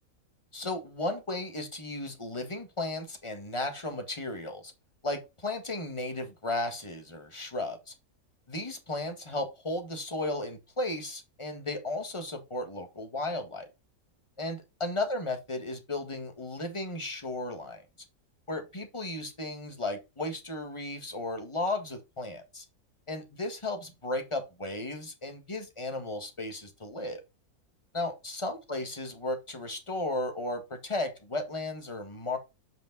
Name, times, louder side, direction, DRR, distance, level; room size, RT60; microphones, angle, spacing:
voice 1, 0.5-4.7 5.0-7.9 8.5-13.7 14.4-17.8 18.5-22.6 23.1-27.2 27.9-32.4, left 2 dB, 20° left, 1.6 m, -35 dB
8.0 x 5.1 x 3.9 m
omnidirectional pair, 1.6 m